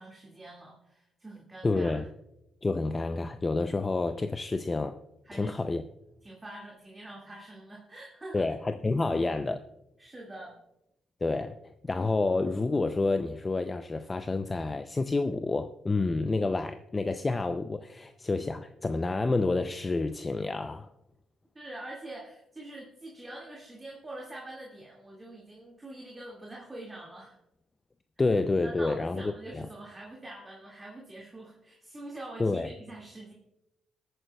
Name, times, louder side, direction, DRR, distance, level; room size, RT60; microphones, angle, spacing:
voice 1, 0.0-2.0 5.2-5.7 6.2-8.5 8.9-9.5 10.0-10.6 21.5-27.4 28.6-33.3, right 1 dB, 20° right, 2.0 m, -45 dB
voice 2, 1.6-2.0 2.6-5.0 5.3-5.8 8.3-9.6 11.2-20.9 28.2-29.6 32.4-32.7, left 3 dB, 25° left, 0.5 m, -29 dB
21.5 x 8.9 x 2.3 m
cardioid pair, 90°, 0 cm